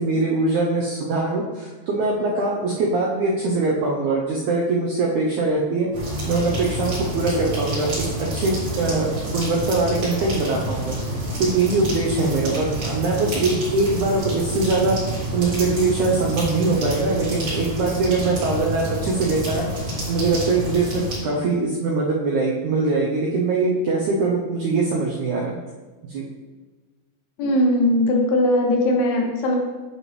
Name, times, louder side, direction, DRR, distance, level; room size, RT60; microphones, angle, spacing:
voice 1, 0.0-5.9 6.3-10.9 11.4-15.0 15.3-19.7 20.1-25.6 26.0-26.2, right 3 dB, 80° right, -3 dB, 1.7 m, -22 dB
sound 1, 5.9-21.2, right 1 dB, 35° right, 2.8 m, -28 dB
voice 2, 27.4-29.6, left 1 dB, 75° left, 1 dB, 2.9 m, -19 dB
9.2 x 5.3 x 3.2 m, 1.3 s
omnidirectional pair, 4.6 m